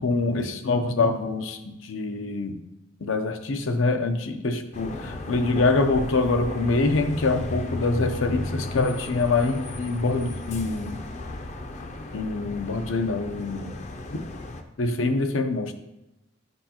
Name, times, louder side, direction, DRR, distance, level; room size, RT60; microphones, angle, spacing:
voice 1, 0.0-2.6 3.0-11.0 12.1-13.8 14.8-15.7, left 3 dB, 85° left, 7 dB, 0.6 m, -25 dB
sound 1, 4.7-14.6, left 2 dB, 35° left, 0.5 m, -35 dB
7.9 x 5.5 x 2.9 m, 0.93 s
head